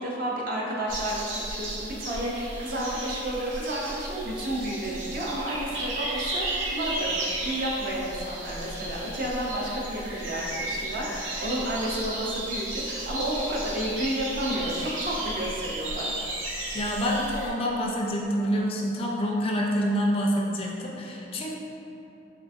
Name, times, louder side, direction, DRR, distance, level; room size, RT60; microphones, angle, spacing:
voice 1, 0.0-16.3, right 1 dB, 50° right, -3 dB, 0.6 m, -31 dB
sound 1, 0.9-17.5, right 1 dB, 90° right, 0.7 m, -34 dB
voice 2, 16.7-21.5, equal, 30° left, -2 dB, 0.3 m, -27 dB
3.7 x 3.2 x 2.5 m, 2.8 s
head